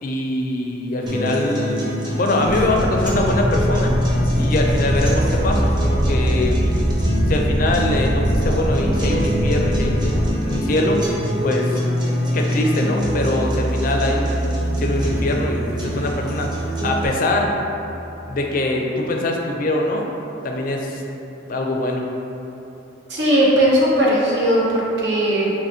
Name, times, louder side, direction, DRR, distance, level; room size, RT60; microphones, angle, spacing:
voice 1, 0.0-3.9 4.4-6.6 7.3-11.0 11.4-11.8 12.3-16.5 16.8-17.6 18.3-20.1 20.4-21.0 21.5-22.0, left 1 dB, 45° left, 1 dB, 0.4 m, -23 dB
sound 1, 1.1-17.1, equal, 20° right, 0.5 m, -24 dB
sound 2, 2.4-10.3, equal, 85° right, 1.5 m, -23 dB
voice 2, 23.1-25.5, right 1 dB, 60° right, -5 dB, 0.7 m, -18 dB
4.7 x 3.0 x 2.7 m, 3.0 s
head